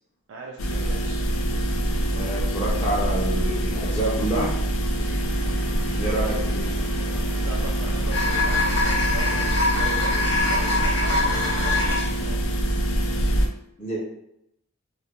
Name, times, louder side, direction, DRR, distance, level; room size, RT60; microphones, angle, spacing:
voice 1, 0.3-1.3 5.0-5.2 7.4-12.4, right 3 dB, 75° right, -1 dB, 0.3 m, -39 dB
sound 1, 0.6-13.5, right 1 dB, 90° left, 0.4 m, -25 dB
voice 2, 2.1-4.5 6.0-6.7 13.8-14.0, right 1 dB, 30° left, -6 dB, 0.4 m, -28 dB
sound 2, 5.1-11.8, equal, 50° right, 0.7 m, -42 dB
sound 3, 8.1-12.2, left 3 dB, 70° left, 0.8 m, -24 dB
2.3 x 2.1 x 2.8 m, 0.79 s
head